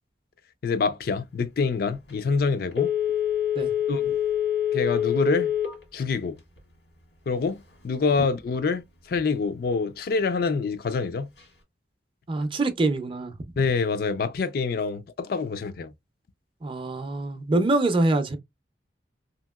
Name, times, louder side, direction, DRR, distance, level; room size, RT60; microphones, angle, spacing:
voice 1, 0.6-2.9 3.9-4.2 4.7-5.5 5.9-6.4 7.3-11.3 13.6-15.9, left 4 dB, 55° left, 0.4 m, -26 dB
Telephone, 2.7-5.8 6.2-6.3, left 10 dB, 90° left, 1.5 m, -25 dB
voice 2, 12.3-13.3 16.6-18.4, right 2 dB, 30° right, 0.5 m, -24 dB
2.8 x 2.8 x 2.3 m
head